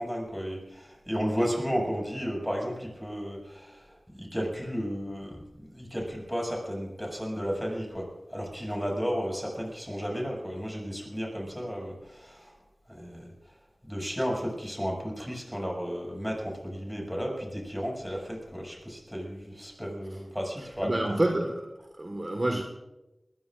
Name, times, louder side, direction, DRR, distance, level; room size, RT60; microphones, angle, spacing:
voice 1, 0.0-12.5 12.9-13.3 13.8-20.9, equal, ahead, -1 dB, 6.9 m, -33 dB
voice 2, 20.8-21.7 22.0-22.6, right 1 dB, 35° right, 3 dB, 1.7 m, -27 dB
22.5 x 20.5 x 2.6 m, 0.98 s
wide cardioid pair, 55°, 0 cm